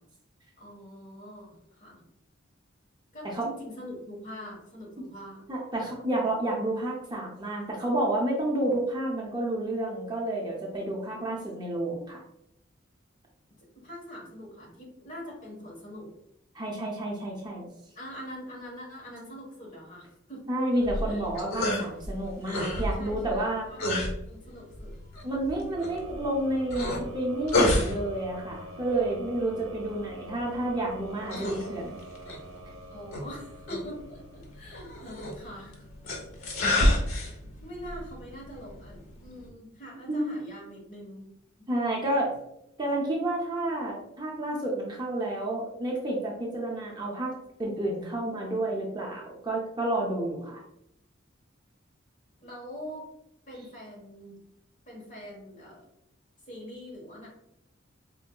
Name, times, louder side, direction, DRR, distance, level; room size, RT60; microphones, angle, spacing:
voice 1, 0.6-2.0 3.1-5.5 13.8-16.1 17.9-20.4 20.7-20.8 21.1-21.2 23.0-24.9 32.9-35.9 36.3-36.6 37.6-41.3 52.4-53.1 53.5-54.4 54.9-55.8 56.5-57.3, equal, 40° left, -3 dB, 1.2 m, -43 dB
voice 2, 5.5-12.2 16.5-17.7 20.5-23.7 25.2-32.0 40.1-40.3 41.7-42.4 42.8-47.3 47.6-50.6, right 1 dB, 20° right, -2 dB, 0.5 m, -30 dB
sound 1, 20.8-39.5, left 1 dB, 90° left, 0.8 m, -32 dB
sound 2, 25.8-34.7, right 1 dB, 65° right, 0.6 m, -45 dB
4.3 x 2.7 x 2.2 m, 0.80 s
head